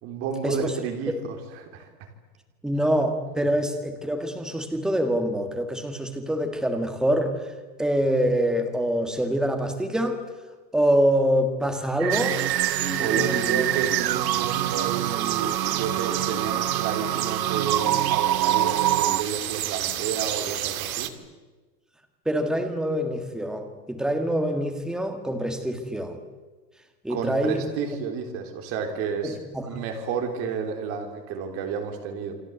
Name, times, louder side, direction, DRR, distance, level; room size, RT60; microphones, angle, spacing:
voice 1, 0.0-1.3 1.6-1.9 3.4-3.5 13.0-21.1 27.1-29.4 29.7-32.3, right 6 dB, 25° right, 4 dB, 3.7 m, -31 dB
voice 2, 2.6-7.4 7.8-10.2 10.7-12.4 12.8-13.6 22.2-26.2 27.0-27.6 29.2-29.7, equal, ahead, 5 dB, 1.7 m, -25 dB
sound 1, 12.0-19.2, right 13 dB, 85° right, 1.1 m, -25 dB
sound 2, 12.1-21.1, right 12 dB, 60° right, 2.2 m, -31 dB
29.0 x 23.5 x 8.2 m, 1.3 s
supercardioid pair, 170°, 48 cm